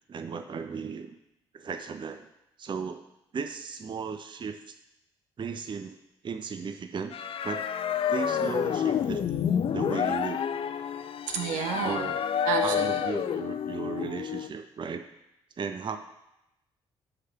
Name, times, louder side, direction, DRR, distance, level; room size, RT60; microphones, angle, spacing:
voice 1, 0.1-1.2 1.5-2.3 2.6-3.1 3.3-4.8 5.4-6.0 6.2-7.1 7.4-7.7 8.1-9.3 9.7-10.5 11.8-12.2 12.6-15.0 15.6-16.0, right 5 dB, 40° right, 8 dB, 0.6 m, -35 dB
sound 1, 7.1-14.5, left 9 dB, 45° left, 0.5 m, -29 dB
voice 2, 11.3-12.0 12.4-13.0, right 6 dB, 75° right, 5 dB, 0.8 m, -30 dB
9.7 x 3.3 x 5.7 m, 0.87 s
hypercardioid pair, 45°, 13 cm